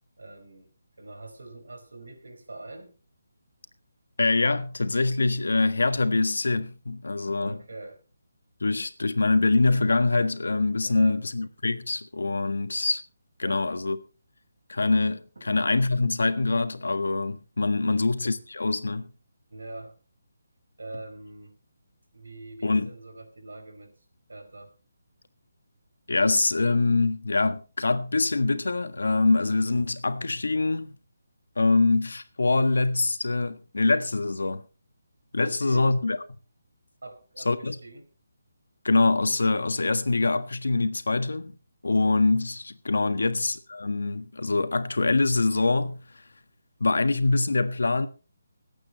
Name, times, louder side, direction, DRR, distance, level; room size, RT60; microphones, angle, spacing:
voice 1, 0.2-0.7 1.0-2.9 7.4-8.0 10.8-11.2 13.4-13.6 15.4-15.5 17.8-18.0 19.5-20.0 20.8-21.6 22.1-23.9 24.3-24.7 35.4-35.9 37.0-38.1 43.1-43.3, right 2 dB, 90° right, 4.8 m, -43 dB
voice 2, 4.2-7.6 8.6-13.0 13.4-14.0 14.7-19.1 22.6-22.9 26.1-30.9 31.6-34.6 35.3-36.2 37.4-37.8 38.8-41.5 41.8-46.0 46.8-48.1, left 3 dB, 85° left, 1.5 m, -24 dB
25.5 x 8.8 x 3.1 m
hypercardioid pair, 165°, 0 cm